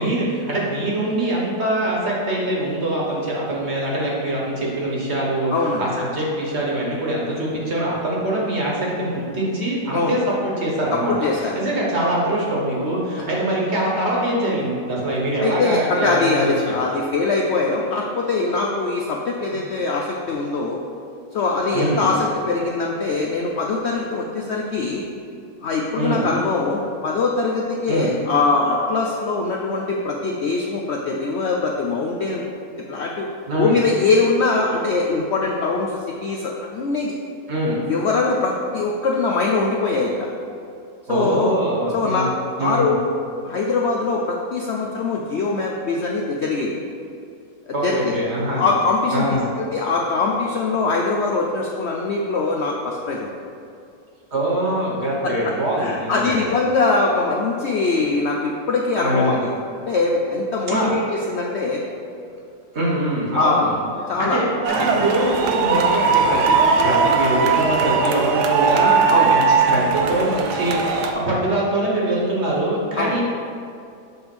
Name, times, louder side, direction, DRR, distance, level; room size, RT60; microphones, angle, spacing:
voice 1, 0.0-5.5 5.8-11.1 11.4-16.5 19.5-19.6 21.7-22.0 25.9-26.3 27.9-28.1 33.5-33.8 37.5-37.8 41.1-42.3 42.6-42.9 47.7-48.7 49.1-49.5 54.3-56.5 59.0-59.5 60.7-60.9 62.7-63.8 64.2-73.2, right 1 dB, 45° right, -4 dB, 1.5 m, -23 dB
voice 2, 5.5-5.8 9.9-10.2 10.9-11.5 15.4-20.8 21.3-25.0 25.6-32.4 32.9-33.3 33.6-37.2 37.8-40.3 41.1-41.6 41.9-42.2 42.6-43.1 43.4-46.8 47.7-48.1 48.5-49.4 49.7-53.3 55.2-59.5 59.9-61.8 63.3-63.7 64.1-64.4 64.7-64.9 69.1-69.3 73.0-73.2, left 3 dB, 65° left, -1 dB, 0.7 m, -22 dB
sound 1, 64.6-71.1, right 5 dB, 80° right, 1.2 m, -19 dB
7.6 x 3.5 x 6.0 m, 2.5 s
omnidirectional pair, 1.7 m